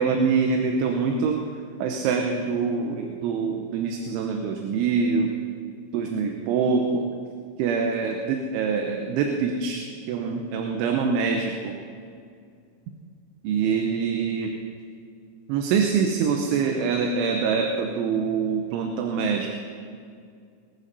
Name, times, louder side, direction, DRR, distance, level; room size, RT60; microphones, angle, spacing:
voice 1, 0.0-1.4 1.8-5.3 5.9-7.1 7.6-11.7 13.4-14.5 15.5-19.5, right 5 dB, 80° right, 3 dB, 3.3 m, -25 dB
21.0 x 12.5 x 4.1 m, 2.3 s
omnidirectional pair, 5.5 m